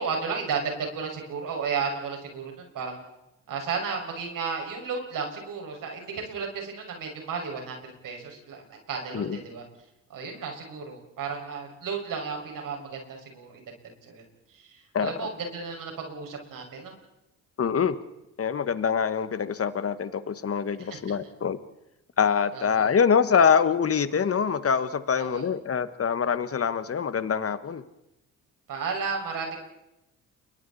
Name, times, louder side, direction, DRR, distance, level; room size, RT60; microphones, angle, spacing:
voice 1, 0.0-3.0 3.5-9.6 10.1-13.6 14.0-14.2 14.5-16.9 20.8-21.0 22.5-22.9 25.1-25.5 28.7-29.6, right 5 dB, 70° right, 2 dB, 6.1 m, -33 dB
voice 2, 17.6-18.0 18.4-21.6 22.2-27.8, left 6 dB, 45° left, 12 dB, 1.6 m, -24 dB
29.0 x 23.0 x 4.3 m, 0.88 s
supercardioid pair, 70°, 34 cm